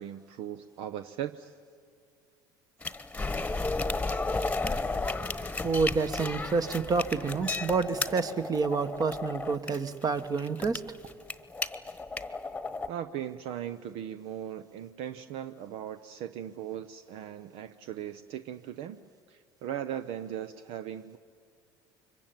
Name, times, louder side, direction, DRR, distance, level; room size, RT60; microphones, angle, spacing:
voice 1, 0.0-1.5 12.9-19.0 19.3-21.2, right 10 dB, 65° right, 11 dB, 0.7 m, -38 dB
sound 1, 2.8-12.9, left 3 dB, 10° left, 1.3 m, -33 dB
voice 2, 5.6-10.8, right 4 dB, 35° right, 11 dB, 1.4 m, -28 dB
25.5 x 23.0 x 9.2 m, 2.3 s
hypercardioid pair, 70°, 11 cm